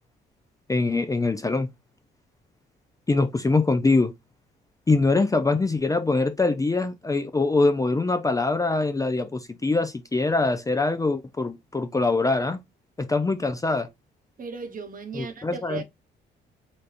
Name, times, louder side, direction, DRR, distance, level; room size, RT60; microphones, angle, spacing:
voice 1, 0.7-1.7 3.1-4.1 4.9-12.6 13.0-13.9 15.2-15.8, left 3 dB, 15° left, 0.5 m, -23 dB
voice 2, 14.4-15.8, right 4 dB, 45° right, 1.0 m, -36 dB
4.1 x 3.4 x 2.5 m
cardioid pair, 90°, 20 cm